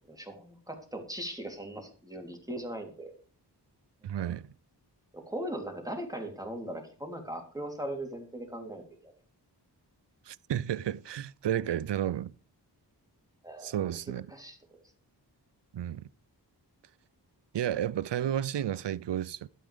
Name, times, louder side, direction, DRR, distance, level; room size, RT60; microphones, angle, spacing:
voice 1, 0.1-3.1 5.1-9.1 13.4-13.8 14.3-14.6, right 1 dB, 10° right, 3.4 m, -39 dB
voice 2, 4.0-4.4 10.3-12.3 13.6-14.3 15.7-16.0 17.5-19.5, right 10 dB, 75° right, 0.6 m, -32 dB
12.0 x 9.6 x 5.0 m
wide cardioid pair, 80°, 42 cm